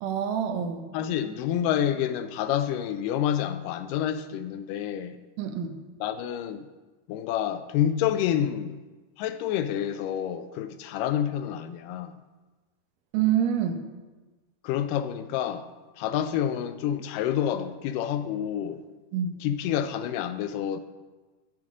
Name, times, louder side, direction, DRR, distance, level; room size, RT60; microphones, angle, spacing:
voice 1, 0.0-0.8 5.4-5.8 13.1-13.8 19.1-19.4, right 9 dB, 80° right, 2.3 m, -26 dB
voice 2, 0.9-5.2 6.0-6.7 7.1-8.8 9.2-12.2 14.6-15.7 16.0-18.8 19.4-20.8, left 10 dB, 85° left, 2.2 m, -28 dB
10.5 x 7.4 x 3.7 m
omnidirectional pair, 3.7 m